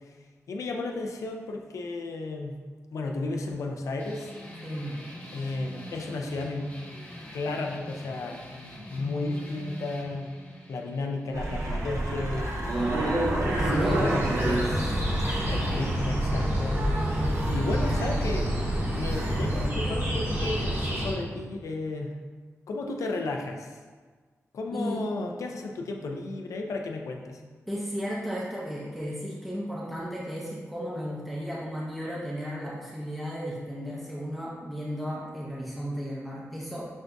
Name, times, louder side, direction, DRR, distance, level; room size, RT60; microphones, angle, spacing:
voice 1, 0.5-2.5 2.9-4.3 5.3-6.7 7.3-8.4 8.9-10.3 10.7-12.5 13.4-15.1 15.5-16.8 17.5-18.5 18.9-22.1 22.7-23.8 24.5-27.4, left 2 dB, 90° left, 2 dB, 0.4 m, -33 dB
sound 1, 4.0-13.0, left 1 dB, 35° left, 1.1 m, -44 dB
voice 2, 4.6-5.0 13.5-14.3 24.7-25.0 27.7-36.8, equal, ahead, -6 dB, 0.6 m, -34 dB
sound 2, 11.3-19.7, right 1 dB, 75° right, 0.6 m, -29 dB
sound 3, 13.5-21.1, equal, 50° right, 1.1 m, -29 dB
6.2 x 2.5 x 2.2 m, 1.5 s
wide cardioid pair, 100°, 5 cm